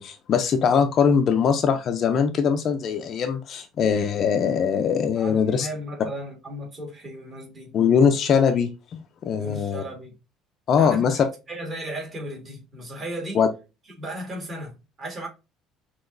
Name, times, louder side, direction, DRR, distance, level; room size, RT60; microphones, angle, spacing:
voice 1, 0.0-5.7 7.7-9.8 10.7-11.2 13.3-13.5, left 7 dB, 40° left, 0.5 m, -21 dB
voice 2, 5.2-7.8 9.3-10.1 10.8-13.4 14.0-15.3, right 1 dB, 25° right, 1.8 m, -35 dB
5.8 x 2.9 x 2.6 m
cardioid pair, 160°, 0 cm